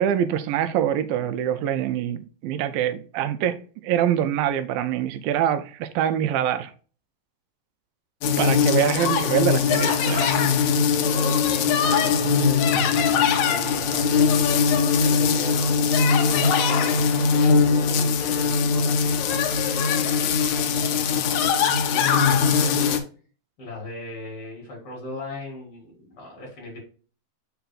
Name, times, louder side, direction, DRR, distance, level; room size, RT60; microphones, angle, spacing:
voice 1, 0.0-6.7 8.4-10.3, right 10 dB, 80° right, 2.2 m, -24 dB
sound 1, 8.2-23.0, left 6 dB, 80° left, 1.6 m, -21 dB
voice 2, 8.6-9.1 11.1-15.8 16.2-23.0 23.6-26.8, left 1 dB, 40° left, 4.2 m, -38 dB
7.9 x 5.7 x 2.4 m
omnidirectional pair, 4.3 m